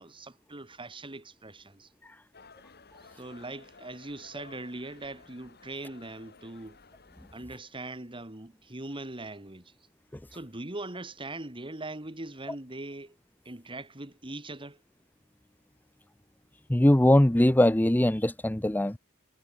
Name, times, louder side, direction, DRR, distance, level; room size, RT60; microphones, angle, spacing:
voice 1, 0.0-1.9 3.2-6.8 7.3-9.7 10.3-13.2 13.4-14.8, right 2 dB, 25° right, 2.3 m, -41 dB
sound 1, 2.3-7.4, left 4 dB, 50° left, 6.8 m, -55 dB
voice 2, 16.7-19.0, left 1 dB, 10° left, 0.6 m, -21 dB
head